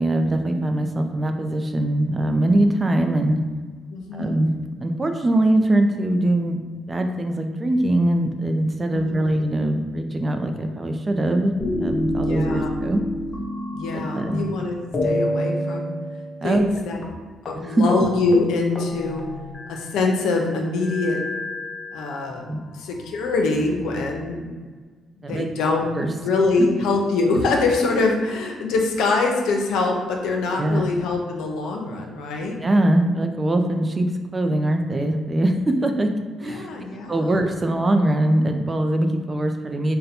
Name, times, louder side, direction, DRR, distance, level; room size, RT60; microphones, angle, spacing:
voice 1, 0.0-3.4 4.1-4.5 4.8-13.0 13.9-14.4 16.4-16.7 17.5-17.8 22.5-22.6 25.2-25.5 25.9-26.1 26.6-26.7 30.6-30.8 32.6-36.1 36.4-36.7 37.1-40.0, right 1 dB, 25° right, 5 dB, 0.4 m, -22 dB
voice 2, 3.9-4.3 8.9-9.3 12.2-12.7 13.7-15.9 16.4-17.0 17.5-19.2 19.7-21.2 21.9-22.5 22.7-24.5 25.2-25.9 26.2-32.6 36.4-37.4, left 3 dB, 85° left, 1 dB, 0.6 m, -24 dB
sound 1, 11.6-14.5 14.9-16.8 17.0-17.1 17.4-17.6 17.9-18.1 18.3-20.0 20.8-22.4 23.1-24.0, left 1 dB, 35° left, 0.7 m, -28 dB
3.9 x 2.2 x 4.2 m, 1.4 s
cardioid pair, 90°, 0 cm